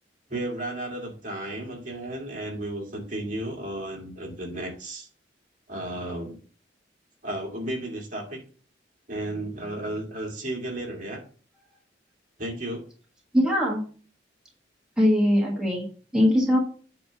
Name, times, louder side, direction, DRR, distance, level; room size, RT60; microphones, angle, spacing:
voice 1, 0.3-5.1 5.7-6.4 7.2-8.4 9.1-11.2 12.4-12.9, right 1 dB, 45° right, 0 dB, 2.1 m, -33 dB
voice 2, 13.3-13.8 15.0-16.6, equal, 5° right, -4 dB, 1.5 m, -21 dB
8.7 x 3.2 x 5.6 m, 0.40 s
head